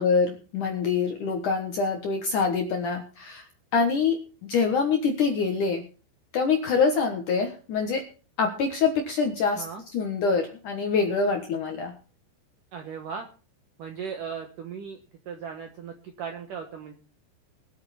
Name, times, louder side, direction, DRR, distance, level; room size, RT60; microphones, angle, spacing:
voice 1, 0.0-3.5 3.7-5.8 6.3-8.0 8.4-9.6 9.9-11.9, left 5 dB, 65° left, 4 dB, 2.1 m, -25 dB
voice 2, 12.7-13.3 13.8-15.0 15.3-16.9, right 6 dB, 70° right, 5 dB, 2.0 m, -37 dB
21.0 x 8.7 x 4.2 m, 0.37 s
omnidirectional pair, 5.4 m